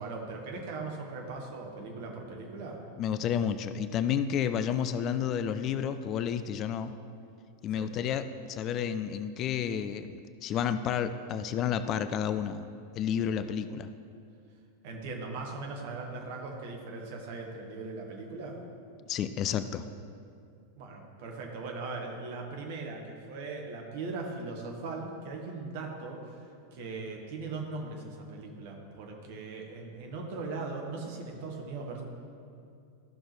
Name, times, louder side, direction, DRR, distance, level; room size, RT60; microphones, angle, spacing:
voice 1, 0.0-2.8 7.7-8.0 14.8-18.6 20.8-26.4 26.7-32.0, right 3 dB, 50° right, 1 dB, 1.4 m, -39 dB
voice 2, 3.0-6.9 7.6-12.7 13.0-13.9 19.1-19.8, left 8 dB, 35° left, 12 dB, 0.3 m, -31 dB
13.5 x 6.1 x 3.2 m, 2.4 s
figure-of-eight pair, 90°, 0 cm